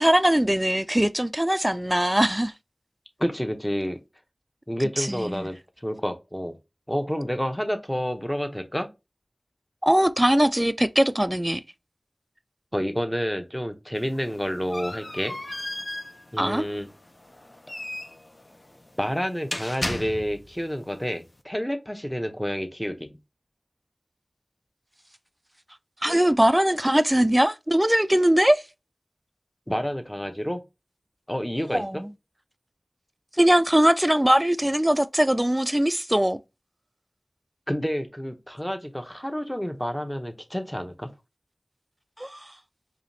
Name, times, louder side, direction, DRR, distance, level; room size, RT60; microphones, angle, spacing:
voice 1, 0.0-2.5 5.0-5.5 9.8-11.6 16.4-16.7 26.0-28.6 31.7-32.1 33.4-36.4 42.2-42.4, right 1 dB, 15° right, 0.4 m, -21 dB
voice 2, 3.2-4.0 4.7-6.6 6.9-8.9 12.7-15.3 16.3-16.9 19.0-23.2 29.7-30.6 31.3-32.0 37.7-41.1, equal, 10° left, 0.8 m, -29 dB
sound 1, 14.0-20.6, left 1 dB, 40° left, 0.6 m, -36 dB
4.9 x 2.8 x 2.7 m
wide cardioid pair, 55°, 0 cm